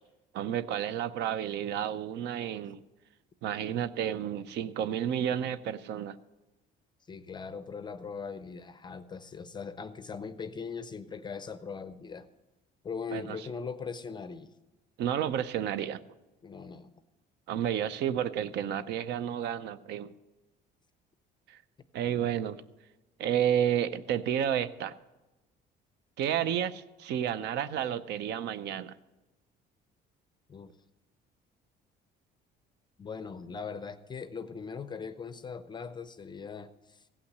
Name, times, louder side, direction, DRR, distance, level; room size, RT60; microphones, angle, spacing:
voice 1, 0.3-2.8 3.4-6.2 13.1-13.4 15.0-16.0 17.5-20.1 21.5-21.6 21.9-22.6 23.2-24.9 26.2-29.0, right 9 dB, 70° right, 15 dB, 0.6 m, -31 dB
voice 2, 7.1-12.3 12.8-14.5 16.4-16.9 30.5-30.8 33.0-37.1, left 5 dB, 25° left, 12 dB, 0.5 m, -40 dB
16.0 x 5.8 x 7.9 m, 1.0 s
cardioid pair, 140°, 18 cm